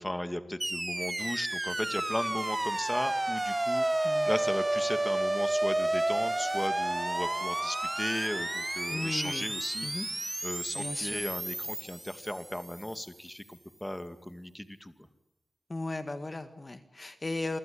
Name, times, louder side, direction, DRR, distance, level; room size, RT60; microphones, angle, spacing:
voice 1, 0.0-9.9 10.2-14.9, left 1 dB, 10° left, 9 dB, 2.2 m, -36 dB
sound 1, 0.6-12.8, right 2 dB, 20° right, 1.3 m, -31 dB
voice 2, 8.9-9.4 9.8-10.1 10.7-11.2 15.7-17.6, left 2 dB, 30° left, 9 dB, 1.8 m, -36 dB
28.0 x 24.5 x 8.6 m, 0.91 s
wide cardioid pair, 95°, 0 cm